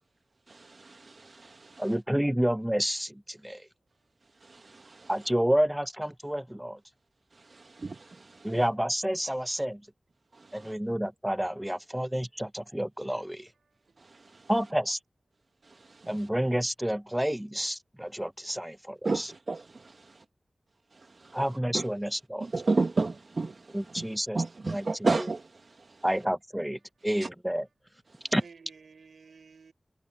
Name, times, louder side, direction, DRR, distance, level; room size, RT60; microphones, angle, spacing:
voice 1, 0.5-1.9 4.4-5.1 7.3-8.6 10.3-10.7 14.0-14.5 15.6-16.1 19.0-19.6 20.1-20.2 20.9-21.4 21.7-21.9 22.4-26.0 27.2-27.3 28.1-28.3, right 3 dB, 65° right, 1.1 m, -33 dB
voice 2, 1.8-3.7 5.1-6.8 8.4-9.8 10.5-13.5 14.5-15.0 16.1-18.8 19.1-19.3 21.3-22.5 23.7-25.3 26.0-27.7 28.3-28.4, equal, 10° right, 0.7 m, -29 dB
voice 3, 13.7-14.5 15.9-16.1 18.5-18.6 28.3-29.7, right 5 dB, 90° right, 4.6 m, -56 dB
cardioid pair, 45°, 0 cm